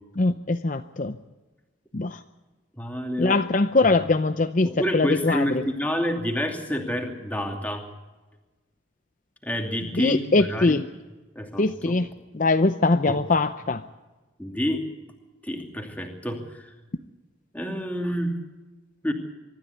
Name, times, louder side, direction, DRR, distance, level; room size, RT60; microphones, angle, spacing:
voice 1, 0.2-1.2 1.9-2.2 3.2-4.7 4.9-5.6 9.9-10.8 11.6-12.1 12.3-13.8, left 3 dB, 45° left, 9 dB, 0.7 m, -22 dB
voice 2, 2.8-3.4 4.6-7.9 9.4-10.8 11.3-11.9 13.1-13.2 14.4-14.8 15.4-16.7 17.5-18.3 19.0-19.1, equal, 10° left, 3 dB, 2.7 m, -28 dB
24.5 x 13.5 x 8.3 m, 1.2 s
head